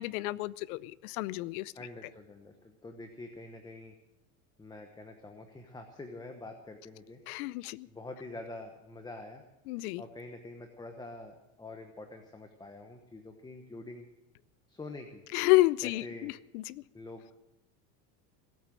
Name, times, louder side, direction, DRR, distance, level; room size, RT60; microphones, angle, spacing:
voice 1, 0.0-1.7 7.3-7.9 9.7-10.0 15.3-16.8, left 19 dB, 80° left, 19 dB, 0.7 m, -30 dB
voice 2, 1.7-3.9 4.6-7.2 7.9-9.4 10.0-14.0 14.7-15.2 15.8-16.3 16.9-17.3, left 2 dB, 10° left, 5 dB, 1.0 m, -46 dB
18.5 x 8.9 x 7.6 m, 0.90 s
supercardioid pair, 145°, 44 cm